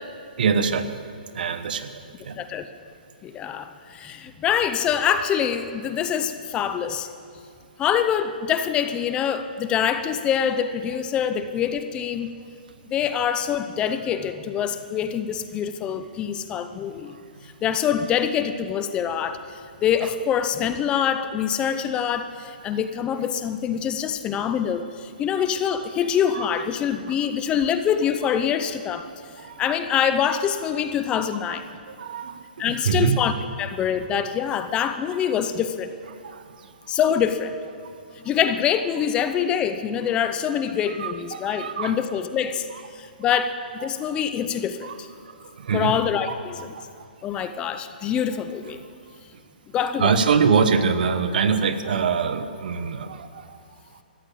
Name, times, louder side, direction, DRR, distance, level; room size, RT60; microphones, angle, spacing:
voice 1, 0.4-1.0 1.3-1.9 2.2-2.3 20.0-20.1 26.3-26.5 32.0-32.4 32.7-33.2 36.3-36.4 40.9-42.0 42.7-42.8 43.8-43.9 44.8-45.0 45.6-46.3 49.8-53.3, right 5 dB, 65° right, 10 dB, 1.2 m, -24 dB
voice 2, 2.4-2.7 3.2-7.1 7.8-12.4 12.9-17.1 17.6-29.1 29.6-31.7 32.6-33.3 33.6-35.9 36.9-37.6 38.2-42.7 42.9-45.1 45.7-46.8 47.2-48.8 49.7-50.2, left 8 dB, 20° left, 10 dB, 0.6 m, -25 dB
14.0 x 9.8 x 8.5 m, 2.3 s
hypercardioid pair, 150°, 5 cm